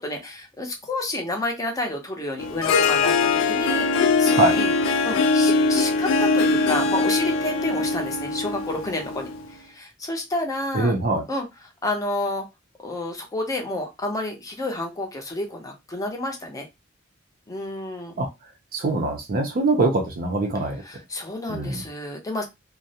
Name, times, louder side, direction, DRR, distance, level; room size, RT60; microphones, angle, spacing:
voice 1, 0.0-4.7 5.0-9.3 9.6-10.9 11.3-11.5 11.8-12.4 12.8-16.7 17.5-18.2 20.8-22.4, left 1 dB, 15° left, 0.6 m, -30 dB
Harp, 2.4-9.5, left 3 dB, 70° left, 0.3 m, -22 dB
voice 2, 10.7-11.2 18.2-18.3 18.7-20.8 21.5-21.8, right 2 dB, 45° right, 0.5 m, -23 dB
2.3 x 2.0 x 2.7 m
head